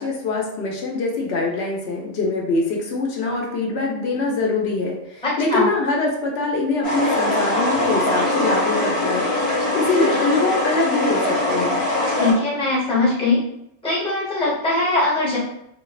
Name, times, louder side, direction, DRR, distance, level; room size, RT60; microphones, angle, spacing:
voice 1, 0.0-9.3 9.7-11.8, left 3 dB, 90° left, -1 dB, 0.9 m, -23 dB
voice 2, 5.2-5.7 12.1-13.4 13.8-15.4, left 2 dB, 5° left, -7 dB, 0.8 m, -21 dB
sound 1, 6.8-12.3, left 1 dB, 60° left, 1.1 m, -22 dB
2.7 x 2.0 x 2.3 m, 0.79 s
omnidirectional pair, 1.1 m